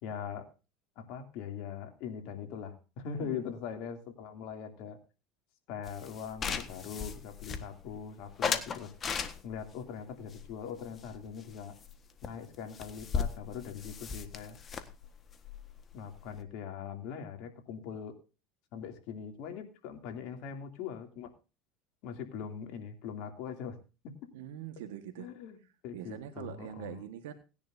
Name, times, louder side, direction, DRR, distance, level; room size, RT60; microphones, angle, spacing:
voice 1, 0.0-0.5 1.0-5.0 5.7-8.9 9.4-11.8 12.2-14.6 15.9-18.2 18.7-21.3 22.0-23.8 24.0-24.3 25.2-27.0, left 7 dB, 65° left, 4 dB, 2.7 m, -41 dB
sound 1, 5.9-8.0 8.4-9.7 10.3-11.5 11.8-11.9 12.2-12.3 12.5-16.4, left 6 dB, 35° left, 1.4 m, -37 dB
voice 2, 24.3-25.3 25.9-27.3, right 11 dB, 85° right, 8 dB, 1.4 m, -43 dB
18.5 x 10.5 x 2.7 m, 0.31 s
supercardioid pair, 105°, 0 cm